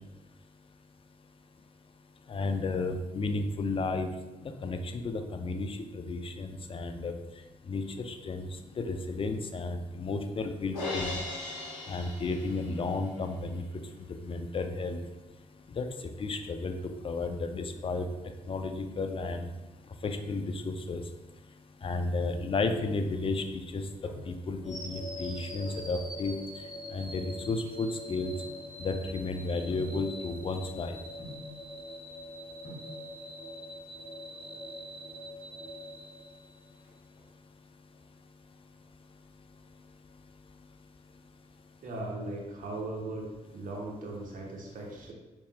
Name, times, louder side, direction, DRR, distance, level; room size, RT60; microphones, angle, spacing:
voice 1, 2.3-4.1 4.4-7.1 7.7-8.5 8.8-11.1 11.9-13.6 14.2-15.0 15.8-15.9 16.2-16.8 17.0-18.1 18.5-19.5 20.0-21.0 21.8-23.8 24.3-26.3 26.9-28.3 28.8-31.0, left 3 dB, 35° left, 7 dB, 0.5 m, -33 dB
Crash cymbal, 10.7-13.0, left 2 dB, 85° left, 0.8 m, -37 dB
sound 1, 22.7-23.1 23.8-24.4 25.6-26.0 26.7-29.1 29.7-30.1 31.2-31.6 32.3-32.4 32.6-33.0 34.1-34.7 35.0-35.1 35.3-35.4 35.8-36.2 36.5-37.5 38.0-38.4 38.8-39.9 40.2-40.3, left 2 dB, 55° left, 1.5 m, -49 dB
sound 2, 24.6-36.8, left 1 dB, ahead, 1.1 m, -44 dB
voice 2, 41.8-43.3 43.5-45.1, right 2 dB, 55° right, -1 dB, 1.0 m, -38 dB
4.0 x 3.5 x 2.2 m, 1.1 s
hypercardioid pair, 40°, 17 cm